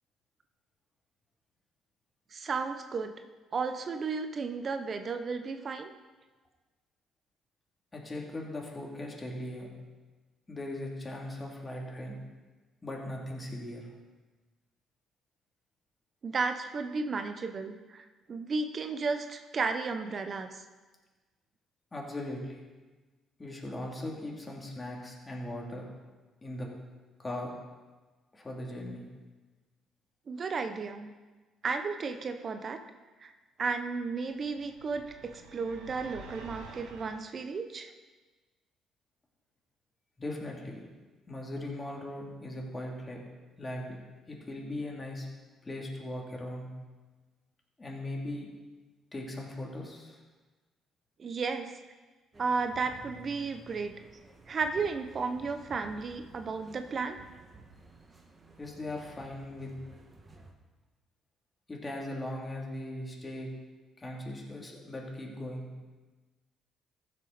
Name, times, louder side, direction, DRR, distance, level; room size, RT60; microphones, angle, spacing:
voice 1, 2.3-3.1 3.5-5.9 16.2-20.6 30.3-31.1 31.6-32.8 33.2-33.3 33.6-37.9 51.2-51.8 52.4-53.9 54.5-57.2, right 4 dB, 45° right, 8 dB, 0.8 m, -33 dB
voice 2, 7.9-9.7 10.5-12.2 12.8-13.9 21.9-22.6 23.4-25.9 26.4-26.7 27.2-27.5 28.3-29.1 40.2-40.8 41.3-43.2 43.6-44.0 44.3-45.3 45.6-46.7 47.8-48.5 49.1-50.2 58.6-59.8 61.7-63.5 64.0-65.7, left 1 dB, 25° left, -1 dB, 2.9 m, -39 dB
sound 1, 34.3-37.2, right 4 dB, 85° right, 1.5 m, -49 dB
sound 2, 52.3-60.5, right 2 dB, 30° right, 1.6 m, -54 dB
15.0 x 6.8 x 4.2 m, 1.3 s
supercardioid pair, 60°, 0 cm